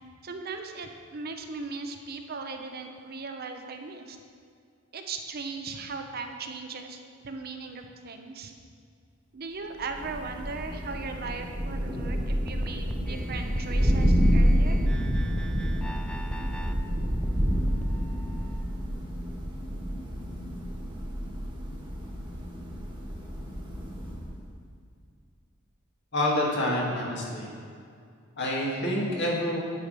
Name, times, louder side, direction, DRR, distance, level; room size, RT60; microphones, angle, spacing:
voice 1, 0.2-4.2 4.9-8.5 9.3-14.8, right 4 dB, 50° right, 5 dB, 0.7 m, -38 dB
Thunder, 9.8-24.4, equal, 20° right, 1.5 m, -28 dB
sound 1, 12.5-18.6, equal, 5° left, 0.3 m, -42 dB
voice 2, 26.1-27.5 28.4-29.6, left 1 dB, 55° left, -3 dB, 1.9 m, -27 dB
9.6 x 5.0 x 5.3 m, 2.3 s
head